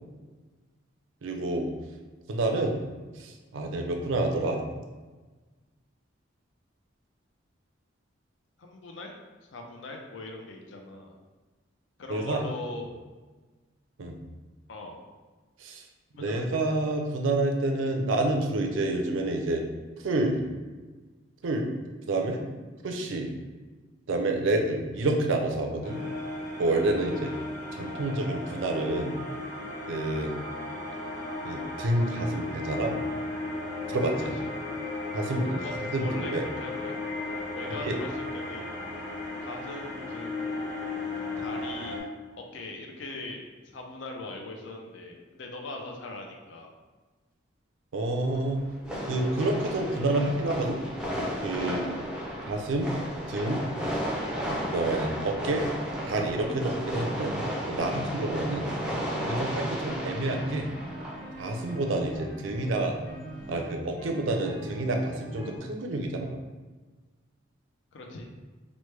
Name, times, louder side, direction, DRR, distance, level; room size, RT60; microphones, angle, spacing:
voice 1, 1.2-1.7 2.3-2.8 3.2-4.6 12.1-12.4 14.0-14.2 15.6-15.8 16.2-19.6 20.0-20.4 21.4-21.7 22.1-22.4 22.8-23.3 24.1-26.0 26.6-27.3 27.7-29.2 29.9-30.3 31.4-33.0 33.9-34.3 35.1-35.6 35.9-36.4 37.8-37.9 47.9-48.6 49.0-50.8 51.4-51.8 52.5-52.9 53.3-53.6 54.7-55.7 56.0-57.3 57.7-58.7 59.2-60.7 61.4-62.9 63.5-66.4, right 2 dB, 80° right, 3 dB, 0.4 m, -28 dB
voice 2, 8.6-9.2 9.5-11.1 12.0-12.9 14.7-15.0 16.1-16.4 34.2-34.5 35.6-37.0 37.6-38.8 39.4-40.5 41.4-42.0 42.4-46.7 67.9-68.3, left 2 dB, 70° left, 2 dB, 0.5 m, -40 dB
sound 1, 25.8-42.0, left 2 dB, 40° left, 1.1 m, -35 dB
sound 2, 48.2-63.6, equal, 5° right, 0.4 m, -34 dB
sound 3, 55.9-65.6, right 1 dB, 20° left, 0.8 m, -42 dB
3.0 x 2.1 x 3.1 m, 1.3 s
head